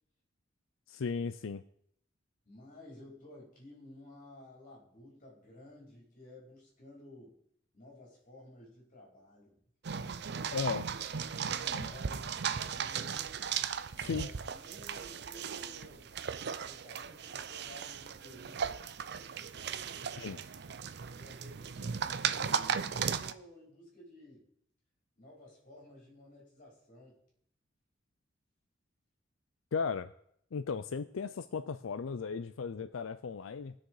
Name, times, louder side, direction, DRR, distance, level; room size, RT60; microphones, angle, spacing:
voice 1, 0.9-1.6 10.5-10.8 14.0-14.3 20.2-20.4 29.7-30.1 30.5-33.7, left 5 dB, 85° left, 12 dB, 0.5 m, -36 dB
voice 2, 2.4-7.4 7.7-9.6 10.0-10.8 11.5-13.3 13.9-16.1 16.7-18.8 19.4-20.4 21.1-24.5 25.2-27.2, left 1 dB, 40° left, -3 dB, 5.0 m, -54 dB
sound 1, 9.8-23.3, right 7 dB, 55° right, 0.5 m, -37 dB
19.0 x 6.6 x 4.8 m, 0.70 s
head